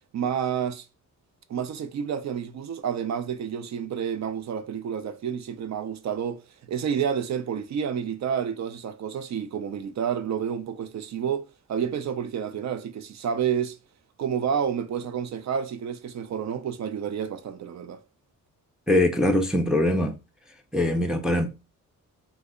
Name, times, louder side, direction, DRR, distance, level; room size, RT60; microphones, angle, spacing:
voice 1, 0.1-0.9 1.5-13.8 14.2-18.0, right 8 dB, 60° right, 0.5 m, -29 dB
voice 2, 18.9-20.1 20.7-21.5, left 1 dB, ahead, 0.4 m, -22 dB
3.2 x 2.0 x 3.6 m
cardioid pair, 110°, 32 cm